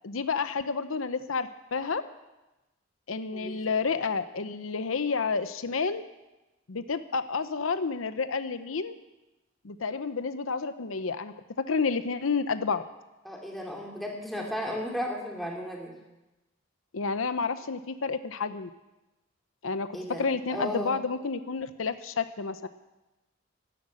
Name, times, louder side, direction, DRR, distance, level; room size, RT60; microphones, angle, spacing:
voice 1, 0.0-2.0 3.1-6.0 6.7-9.0 9.6-11.3 11.7-12.8 16.9-18.7 19.6-19.9 20.2-22.7, left 4 dB, 90° left, 11 dB, 0.8 m, -30 dB
voice 2, 13.2-16.0 19.9-20.9, left 1 dB, ahead, -1 dB, 2.6 m, -35 dB
13.0 x 11.5 x 8.6 m, 1.0 s
head